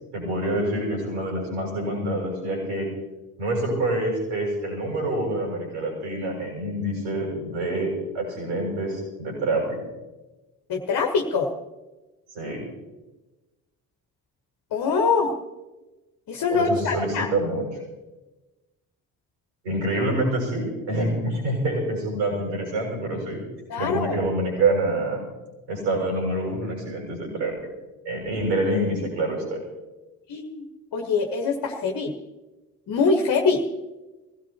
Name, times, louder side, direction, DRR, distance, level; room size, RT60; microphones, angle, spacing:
voice 1, 0.1-2.9 3.4-9.8 12.3-12.6 16.5-17.6 19.6-23.4 23.8-25.2 25.7-27.5 28.0-29.6, right 1 dB, 75° right, -1 dB, 6.8 m, -26 dB
voice 2, 10.7-11.5 14.7-15.3 16.3-17.3 23.7-24.2 30.3-32.1 32.9-33.6, left 4 dB, 50° left, 1 dB, 1.5 m, -24 dB
23.0 x 17.0 x 3.0 m, 1.1 s
figure-of-eight pair, 45°, 45 cm